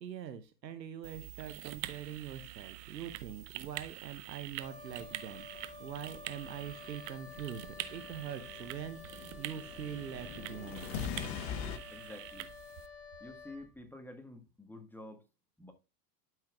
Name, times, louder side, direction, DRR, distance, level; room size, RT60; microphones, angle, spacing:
voice 1, 0.0-11.0, right 9 dB, 90° right, 0.8 m, -44 dB
sound 1, 1.0-12.9, right 15 dB, 40° right, 0.9 m, -46 dB
Wind instrument woodwind instrument, 4.6-13.7, left 5 dB, 30° left, 3.6 m, -51 dB
sound 2, 5.4-11.8, left 7 dB, 50° left, 1.2 m, -44 dB
voice 2, 11.9-12.5 13.2-15.3 15.6-15.7, left 1 dB, 5° left, 1.5 m, -49 dB
12.0 x 5.7 x 2.3 m
hypercardioid pair, 85°, 49 cm